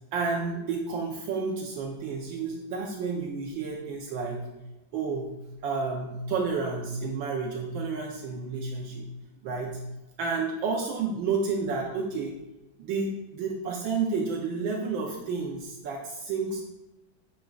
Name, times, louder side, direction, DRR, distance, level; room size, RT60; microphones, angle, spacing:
voice 1, 0.1-4.4 4.9-5.3 5.6-9.0 9.4-9.8 10.2-12.3 12.8-16.6, right 4 dB, 80° right, 0 dB, 1.5 m, -30 dB
8.9 x 5.2 x 2.3 m, 0.95 s
omnidirectional pair, 2.1 m